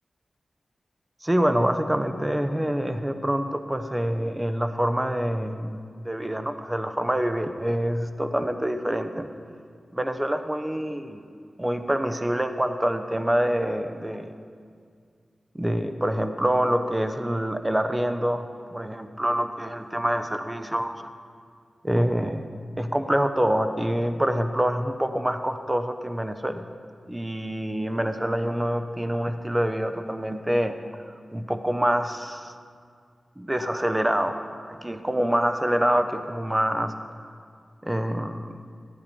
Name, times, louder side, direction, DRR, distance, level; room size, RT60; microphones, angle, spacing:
voice 1, 1.2-5.8 6.0-9.3 9.9-11.3 11.6-14.3 15.5-21.1 21.8-22.5 22.8-26.6 27.1-30.7 31.3-32.6 33.4-36.9 37.8-38.5, equal, 20° right, 8 dB, 0.9 m, -26 dB
15.0 x 10.0 x 5.4 m, 2.1 s
cardioid pair, 40°, 0 cm